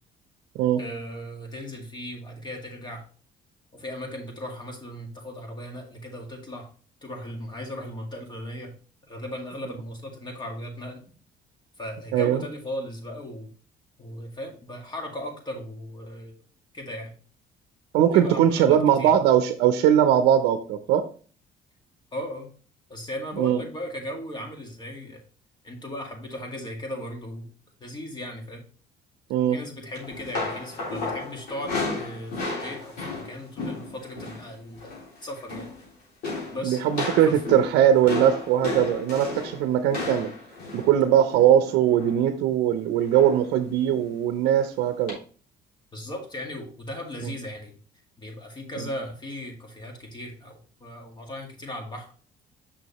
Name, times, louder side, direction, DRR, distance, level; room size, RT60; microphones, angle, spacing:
voice 1, 0.8-3.0 3.7-6.7 7.0-8.7 9.1-11.0 11.8-13.5 14.0-16.4 16.7-17.1 18.1-19.1 22.1-22.5 22.9-25.2 25.6-27.5 27.8-28.6 29.5-35.7 36.5-36.8 37.3-37.4 45.9-47.7 48.2-52.1, equal, 25° left, 2 dB, 2.0 m, -37 dB
voice 2, 12.1-12.4 17.9-21.0 23.4-23.6 29.3-29.6 36.6-40.3 40.7-45.2 47.2-47.3 48.8-48.9, right 10 dB, 85° right, 9 dB, 0.6 m, -20 dB
sound 1, 29.9-34.5 34.7-35.1 35.4-35.9 36.2-42.3 43.1-43.5 43.8-44.0 45.1-45.2, left 3 dB, 70° left, 3.5 m, -34 dB
6.3 x 6.1 x 2.9 m, 0.40 s
cardioid pair, 110°, 17 cm